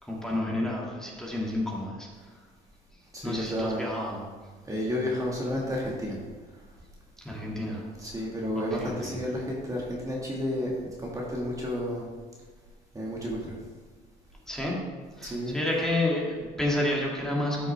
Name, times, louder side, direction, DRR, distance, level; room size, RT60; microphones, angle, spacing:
voice 1, 0.0-2.1 3.2-4.2 7.2-7.8 8.5-9.2 14.5-14.8 15.2-17.7, left 1 dB, 5° left, -3 dB, 2.1 m, -30 dB
voice 2, 3.1-4.0 4.6-6.2 8.0-10.7 11.0-12.0 12.9-13.6 15.2-15.7, left 1 dB, 20° right, -3 dB, 1.8 m, -31 dB
12.5 x 6.3 x 3.4 m, 1.5 s
cardioid pair, 110°, 17 cm